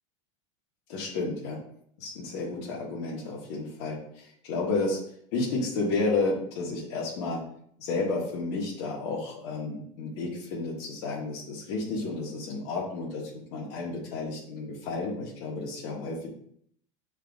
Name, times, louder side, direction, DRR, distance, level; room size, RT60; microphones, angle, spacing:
voice 1, 0.9-1.6 2.0-5.0 5.3-7.4 7.8-16.1, left 3 dB, 55° left, 1 dB, 1.0 m, -31 dB
5.7 x 2.4 x 2.3 m, 0.65 s
supercardioid pair, 155°, 16 cm